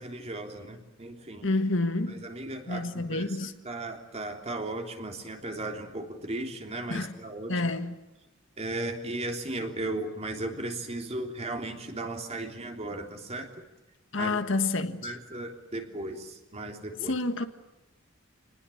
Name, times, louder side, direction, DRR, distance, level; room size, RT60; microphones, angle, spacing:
voice 1, 0.0-1.5 2.1-3.4 3.6-7.7 8.6-13.5 14.2-14.4 15.0-17.2, right 2 dB, 30° right, 3.4 m, -36 dB
voice 2, 1.4-2.2 2.7-3.5 6.9-7.1 7.5-8.0 14.1-15.1 17.1-17.4, left 2 dB, 65° left, 1.7 m, -28 dB
28.0 x 20.5 x 8.6 m
head